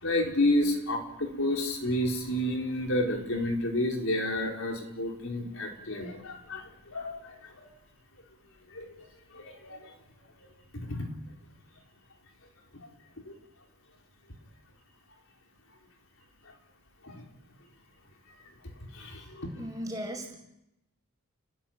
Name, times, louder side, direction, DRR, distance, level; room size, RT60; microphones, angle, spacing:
voice 1, 0.0-7.2 8.7-9.0 9.3-9.9 10.7-11.1 17.0-17.2 18.9-19.5, left 1 dB, 65° left, 2 dB, 4.5 m, -30 dB
voice 2, 19.5-20.3, equal, 15° right, 2 dB, 5.9 m, -36 dB
30.0 x 20.0 x 9.0 m, 0.86 s
head